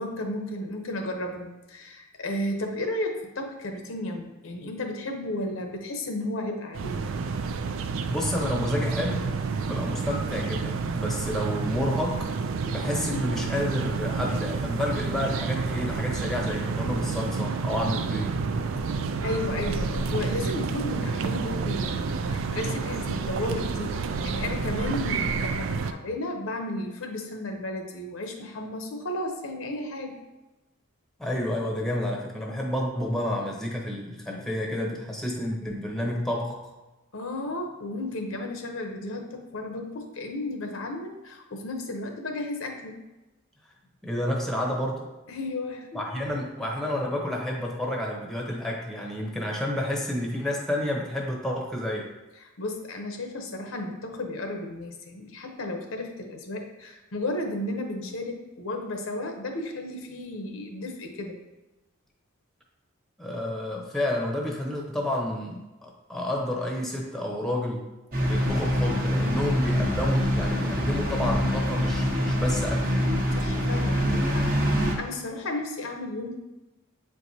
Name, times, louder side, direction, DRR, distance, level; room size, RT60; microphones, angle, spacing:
voice 1, 0.0-7.0 19.2-30.2 37.1-43.0 45.3-46.3 52.4-61.4 73.3-76.4, left 1 dB, 70° left, 4 dB, 0.8 m, -33 dB
sound 1, 6.7-25.9, right 4 dB, 65° right, 0.4 m, -29 dB
voice 2, 8.1-9.3 9.7-12.3 12.7-18.4 31.2-36.7 44.0-45.1 45.9-52.1 63.2-67.8 68.2-73.0, left 1 dB, ahead, -1 dB, 0.8 m, -30 dB
sound 2, 68.1-75.0, equal, 40° right, 1.0 m, -25 dB
7.7 x 4.7 x 2.8 m, 1.1 s
head